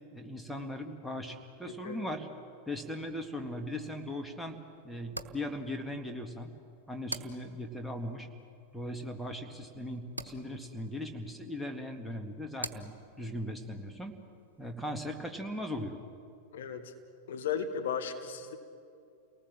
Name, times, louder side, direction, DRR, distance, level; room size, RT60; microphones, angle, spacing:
voice 1, 0.1-2.3 2.7-4.6 4.8-6.5 6.9-8.3 8.7-14.1 14.6-16.0, left 1 dB, 5° left, 4 dB, 2.1 m, -39 dB
voice 2, 1.6-2.1 16.5-16.9 17.3-18.6, left 7 dB, 60° left, 6 dB, 1.6 m, -36 dB
sound 1, 3.0-15.9, right 2 dB, 80° right, 1.0 m, -49 dB
29.5 x 19.0 x 7.6 m, 2.5 s
figure-of-eight pair, 90°, 0 cm